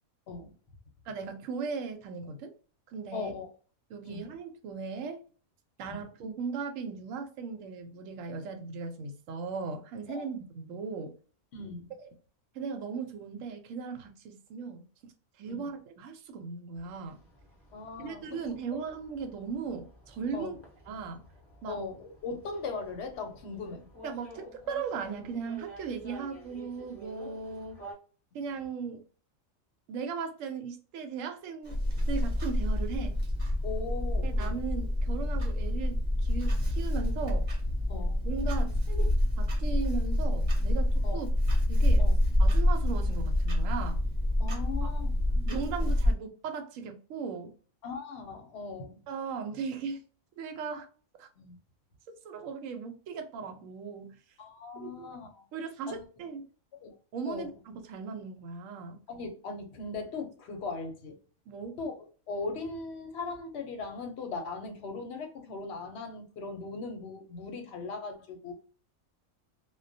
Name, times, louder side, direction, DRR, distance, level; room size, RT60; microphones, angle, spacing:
voice 1, 1.1-2.5 2.9-3.3 3.9-5.2 5.8-11.1 12.5-14.8 15.4-17.2 18.0-20.6 20.9-21.2 21.6-21.8 24.0-27.8 28.3-29.0 29.9-31.8 32.1-33.2 34.2-37.5 38.2-39.1 39.4-41.3 41.7-42.1 42.4-44.0 44.8-44.9 45.5-47.5 49.1-50.0 50.4-50.9 51.2-51.3 52.2-54.2 54.8-55.1 55.5-56.4 57.1-59.0 61.5-61.8, right 5 dB, 70° right, 0.9 m, -37 dB
voice 2, 3.1-3.5 4.0-4.3 5.8-6.0 10.1-10.3 11.5-11.9 15.5-15.6 17.7-18.2 18.7-18.8 20.3-20.5 21.7-23.9 27.3-27.4 33.6-34.5 37.9-38.2 41.0-41.2 42.0-42.2 44.4-45.9 47.8-49.0 51.4-51.6 54.4-55.4 55.9-56.1 56.8-57.0 57.3-57.5 59.1-61.2 61.8-68.5, left 4 dB, 60° left, 0.8 m, -39 dB
sound 1, 16.7-27.9, right 2 dB, 15° left, 0.5 m, -51 dB
Clock, 31.7-46.1, left 1 dB, 40° right, 0.8 m, -27 dB
2.2 x 2.2 x 2.5 m
omnidirectional pair, 1.5 m